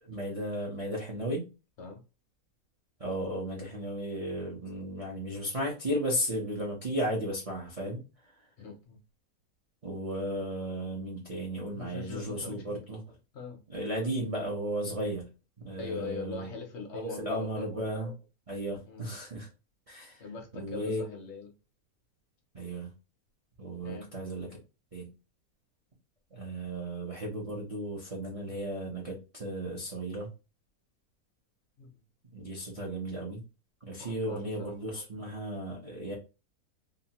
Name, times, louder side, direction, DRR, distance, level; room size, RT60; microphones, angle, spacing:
voice 1, 0.0-1.4 3.0-8.0 9.8-13.0 13.7-15.2 15.6-16.5 16.9-18.1 18.5-19.5 19.9-20.2 20.5-21.0 22.5-22.9 23.6-24.6 24.9-25.1 26.3-30.3 32.3-33.4 33.8-36.2, right 1 dB, 55° right, 0.4 m, -35 dB
voice 2, 8.6-9.0 11.7-12.8 13.3-13.6 15.8-17.7 18.9-19.2 20.2-21.5 23.8-24.1 31.8-31.9 34.0-34.7, left 4 dB, 65° left, 0.7 m, -42 dB
2.9 x 2.2 x 2.8 m
omnidirectional pair, 1.7 m